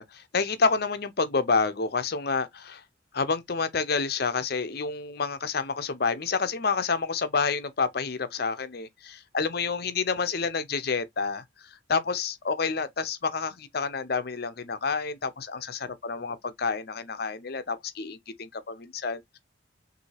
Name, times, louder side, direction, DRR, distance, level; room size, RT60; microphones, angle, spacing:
voice 1, 0.0-2.8 3.1-11.4 11.9-19.4, left 4 dB, 55° left, 0.7 m, -29 dB
6.1 x 2.7 x 2.7 m
head